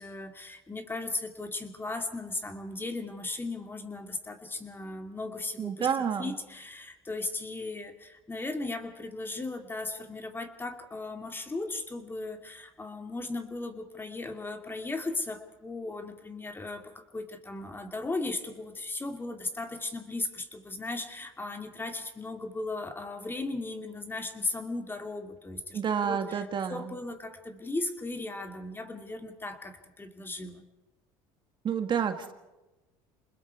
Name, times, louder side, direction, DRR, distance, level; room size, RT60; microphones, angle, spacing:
voice 1, 0.0-5.9 6.2-26.4 26.7-30.6, left 2 dB, 20° left, 5 dB, 2.6 m, -37 dB
voice 2, 5.6-6.4 25.7-27.0 31.6-32.3, right 7 dB, 40° right, 7 dB, 1.7 m, -29 dB
28.5 x 20.5 x 4.8 m, 1.0 s
supercardioid pair, 90°, 12 cm